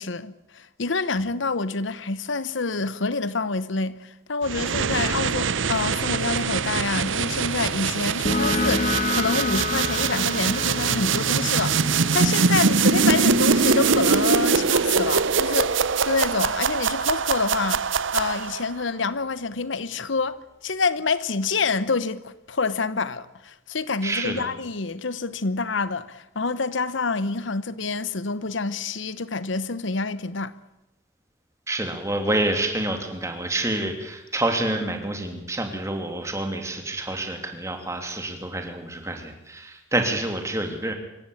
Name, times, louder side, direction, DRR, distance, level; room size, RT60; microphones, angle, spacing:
voice 1, 0.0-20.4 20.6-30.5, left 4 dB, 75° left, 1.0 m, -27 dB
sound 1, 4.4-18.7, right 5 dB, 80° right, 0.8 m, -23 dB
sound 2, 8.3-15.5, left 3 dB, 35° left, 1.1 m, -30 dB
voice 2, 24.0-24.5 31.7-40.9, right 1 dB, 15° right, 3.0 m, -28 dB
25.5 x 15.0 x 8.7 m
head